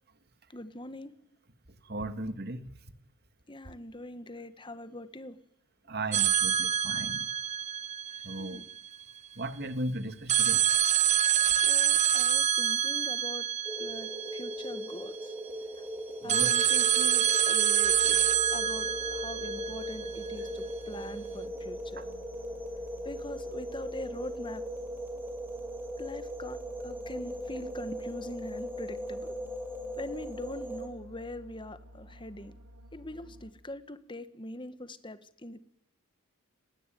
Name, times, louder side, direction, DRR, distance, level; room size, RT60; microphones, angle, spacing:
voice 1, 0.5-1.1 3.5-5.4 8.4-8.7 11.6-13.5 13.8-15.3 15.8-15.9 16.2-18.2 18.5-22.1 23.0-24.6 26.0-26.6 26.8-29.4 30.0-32.5 32.9-35.6, left 1 dB, 20° left, 12 dB, 1.8 m, -42 dB
voice 2, 1.8-2.7 5.9-7.3 8.2-8.6 9.4-10.6 16.2-16.5 22.0-22.1, right 1 dB, 45° right, 10 dB, 2.3 m, -36 dB
sound 1, 6.1-9.0 10.3-15.2 16.3-20.5, right 9 dB, 30° right, 1.1 m, -27 dB
sound 2, 13.6-30.9, equal, 10° right, 4.9 m, -39 dB
sound 3, 17.8-33.5, equal, 80° right, 5.6 m, -51 dB
29.5 x 21.0 x 9.3 m, 0.76 s
head